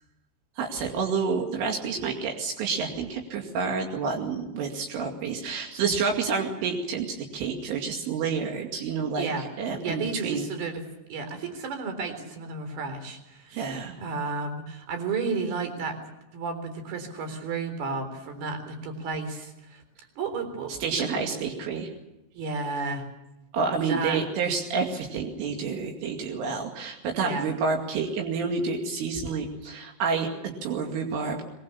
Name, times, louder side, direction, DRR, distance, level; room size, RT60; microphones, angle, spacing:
voice 1, 0.6-10.5 13.5-14.0 20.7-21.9 23.5-31.4, right 5 dB, 80° right, 2 dB, 4.9 m, -29 dB
voice 2, 9.8-10.8 11.1-13.6 14.0-16.0 16.3-19.8 20.2-21.4 22.4-23.1 23.9-24.2 27.2-27.5, right 4 dB, 55° right, 7 dB, 5.5 m, -32 dB
23.0 x 22.5 x 7.1 m, 0.95 s
omnidirectional pair, 5.6 m